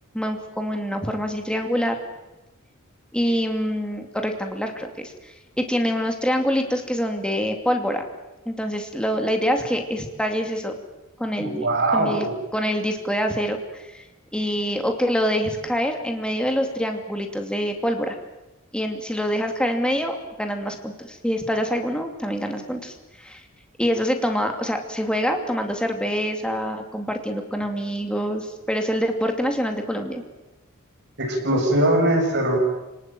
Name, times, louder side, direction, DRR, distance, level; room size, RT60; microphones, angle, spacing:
voice 1, 0.1-2.0 3.1-5.1 5.6-8.1 8.5-10.7 11.2-11.7 11.9-12.3 12.5-14.0 14.3-18.1 18.7-23.4 23.8-30.2, equal, 5° left, 4 dB, 2.5 m, -25 dB
voice 2, 11.4-12.3 31.2-32.6, right 1 dB, 50° right, 0 dB, 7.7 m, -21 dB
28.5 x 19.0 x 9.2 m, 1.0 s
head